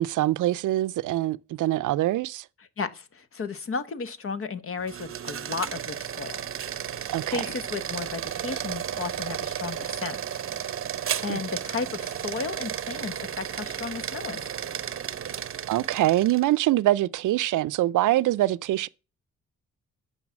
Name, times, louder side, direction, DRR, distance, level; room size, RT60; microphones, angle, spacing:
voice 1, 0.0-2.4 7.1-7.4 11.3-11.4 15.7-18.9, right 15 dB, 90° right, 0.5 m, -24 dB
voice 2, 2.8-6.5 7.2-10.4 11.2-14.5, left 5 dB, 45° left, 1.0 m, -34 dB
sound 1, 4.8-16.6, right 9 dB, 45° right, 0.7 m, -33 dB
9.4 x 5.6 x 7.3 m
cardioid pair, 115°, 30 cm